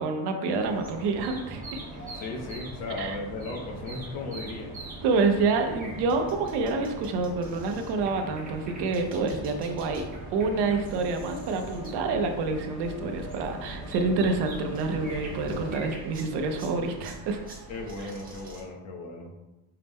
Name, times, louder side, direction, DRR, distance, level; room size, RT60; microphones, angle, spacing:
voice 1, 0.0-1.8 3.0-3.2 5.0-10.0 10.3-17.4, right 4 dB, 55° right, 6 dB, 0.6 m, -27 dB
sound 1, 0.6-15.8, equal, 30° left, 1.0 m, -42 dB
sound 2, 0.6-18.6, right 3 dB, 15° right, 0.8 m, -45 dB
voice 2, 2.1-4.8 17.7-19.3, left 3 dB, 80° left, 1 dB, 1.0 m, -36 dB
5.5 x 2.1 x 3.4 m, 1.0 s
cardioid pair, 165°, 49 cm